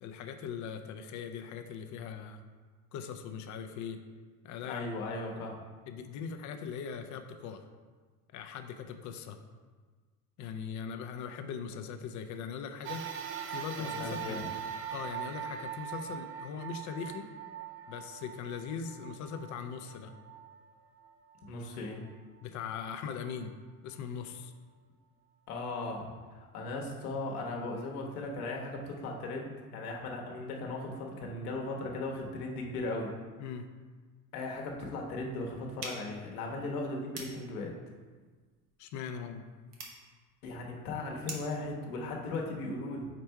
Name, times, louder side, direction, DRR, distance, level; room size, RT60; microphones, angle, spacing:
voice 1, 0.0-2.4 2.9-4.0 4.4-4.8 5.9-7.6 8.3-9.4 10.4-13.0 13.5-14.4 14.9-17.3 17.9-20.1 22.4-23.5 23.8-24.5 33.4-33.7 38.8-39.4, left 6 dB, 40° left, 7 dB, 0.6 m, -40 dB
voice 2, 4.6-5.5 13.8-14.4 21.5-22.0 25.5-33.1 34.3-37.7 40.4-43.1, left 2 dB, 65° left, 0 dB, 1.2 m, -37 dB
sound 1, 12.8-21.5 22.1-22.2 23.3-23.4, right 8 dB, 30° right, 0.5 m, -42 dB
sound 2, 35.8-41.6, right 3 dB, 80° right, 1.2 m, -47 dB
5.0 x 4.3 x 4.4 m, 1.4 s
figure-of-eight pair, 70°, 47 cm